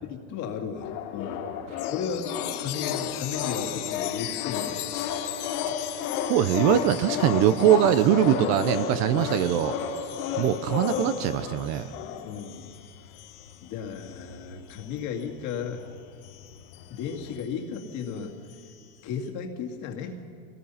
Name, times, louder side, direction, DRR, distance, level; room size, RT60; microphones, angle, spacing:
voice 1, 0.0-1.4 1.9-4.8 12.2-12.7 13.6-15.9 16.9-18.3 19.0-20.2, left 6 dB, 40° left, 3 dB, 2.3 m, -34 dB
sound 1, 0.8-12.5 13.1-13.2 13.4-13.6 14.0-15.4 15.6-17.4, left 8 dB, 70° left, 3.3 m, -32 dB
Chime, 1.8-15.8 16.2-19.0, left 15 dB, 90° left, 1.4 m, -40 dB
voice 2, 6.3-9.7 10.4-11.9, right 11 dB, 40° right, 13 dB, 0.7 m, -22 dB
25.0 x 19.0 x 5.7 m, 2.2 s
supercardioid pair, 160°, 44 cm